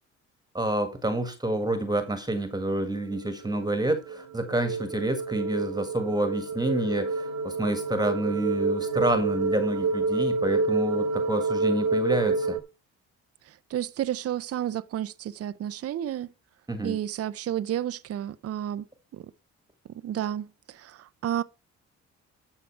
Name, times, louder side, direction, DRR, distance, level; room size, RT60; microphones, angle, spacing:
voice 1, 0.5-12.6 16.7-17.0, right 1 dB, 15° right, 1.7 m, -28 dB
sound 1, 3.1-12.6, right 3 dB, 70° right, 1.4 m, -28 dB
voice 2, 13.5-16.3 16.8-18.8 19.1-19.3 20.0-21.4, right 11 dB, 50° right, 0.6 m, -31 dB
12.5 x 5.8 x 4.5 m
cardioid pair, 90°, 30 cm